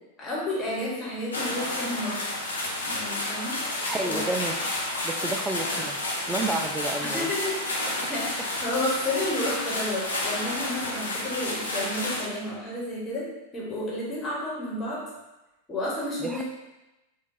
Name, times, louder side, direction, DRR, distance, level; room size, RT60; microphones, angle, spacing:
voice 1, 0.2-2.2 2.9-3.6 4.0-4.2 7.0-8.2 8.6-13.3 13.5-15.0 15.7-16.4, left 1 dB, 20° left, -6 dB, 1.3 m, -31 dB
sound 1, 1.3-12.3, left 1 dB, 75° left, 0.6 m, -30 dB
voice 2, 3.9-4.8 5.0-6.0 6.3-7.3 16.2-16.4, right 2 dB, 15° right, 5 dB, 0.3 m, -30 dB
4.5 x 2.2 x 2.7 m, 1.0 s
figure-of-eight pair, 90°, 0 cm